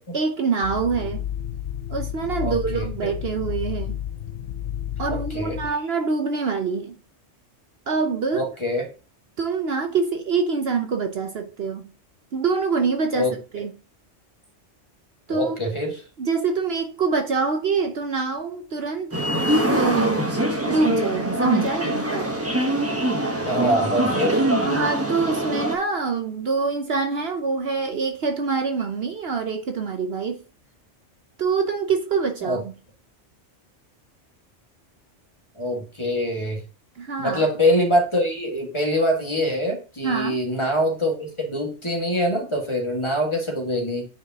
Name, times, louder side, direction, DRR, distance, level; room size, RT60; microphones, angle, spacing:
voice 1, 0.1-1.2 1.9-4.0 5.0-6.9 7.9-8.5 9.4-11.9 12.3-13.3 13.5-13.7 15.3-15.6 16.2-19.2 19.7-20.3 20.6-22.3 24.6-30.4 31.4-32.7 37.0-37.5 40.0-40.4, right 5 dB, 55° right, 1.0 m, -25 dB
sound 1, 0.6-5.7, left 11 dB, 65° left, 0.8 m, -31 dB
voice 2, 2.4-3.1 5.1-5.6 8.3-8.9 13.1-13.6 15.3-16.0 23.4-24.5 32.4-32.6 35.6-36.6 37.2-44.1, equal, 25° left, 1.7 m, -24 dB
sound 2, 19.1-25.7, right 1 dB, 10° right, 1.0 m, -23 dB
9.3 x 4.9 x 2.8 m
omnidirectional pair, 1.3 m